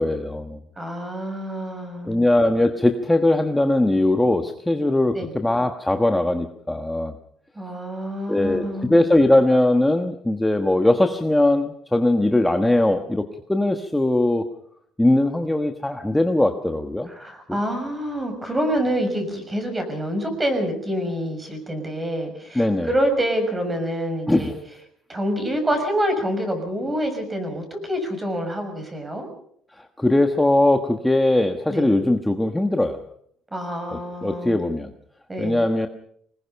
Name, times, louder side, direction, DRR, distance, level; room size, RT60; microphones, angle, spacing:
voice 1, 0.0-0.6 2.1-7.2 8.3-14.5 15.0-17.1 22.5-22.9 24.3-24.6 29.8-33.0 33.9-34.9 35.4-35.9, left 1 dB, 5° left, 6 dB, 1.3 m, -20 dB
voice 2, 0.8-2.2 5.1-5.3 7.6-9.0 17.2-24.5 25.1-29.3 31.7-32.0 33.5-34.8 35.3-35.6, equal, 15° right, 6 dB, 6.4 m, -27 dB
25.5 x 20.5 x 5.8 m, 0.66 s
cardioid pair, 140°, 0 cm